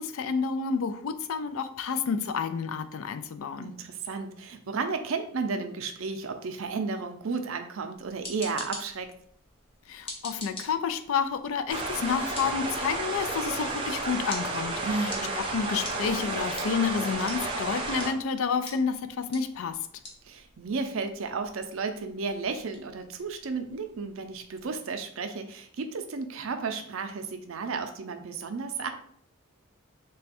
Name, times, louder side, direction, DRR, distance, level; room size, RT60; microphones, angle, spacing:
voice 1, 0.0-3.7 9.9-19.8, left 6 dB, 75° left, 11 dB, 0.4 m, -30 dB
voice 2, 3.6-9.1 14.8-15.3 20.2-28.9, right 4 dB, 70° right, 7 dB, 0.5 m, -33 dB
sound 1, 7.9-24.8, left 1 dB, 25° left, 0.8 m, -47 dB
sound 2, 11.7-18.1, right 2 dB, 25° right, 0.5 m, -32 dB
3.3 x 2.2 x 4.2 m, 0.63 s
head